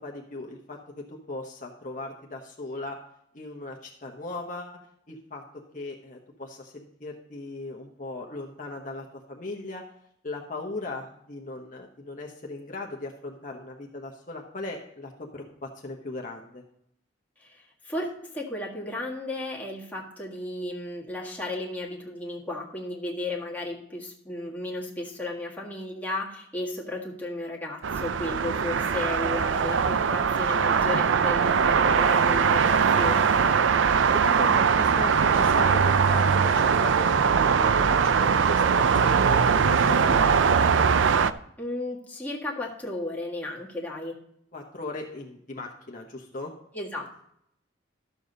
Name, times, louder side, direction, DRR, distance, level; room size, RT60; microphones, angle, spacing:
voice 1, 0.0-3.0 3.3-4.8 5.1-5.4 5.7-9.8 10.2-16.6 34.1-40.9 44.5-46.5, left 2 dB, 40° left, 0 dB, 1.1 m, -38 dB
voice 2, 17.4-33.5 41.6-44.2 46.7-47.2, left 1 dB, 10° left, -3 dB, 1.7 m, -34 dB
sound 1, 27.8-41.3, right 6 dB, 75° right, 0.4 m, -21 dB
12.5 x 7.1 x 4.0 m, 0.73 s
head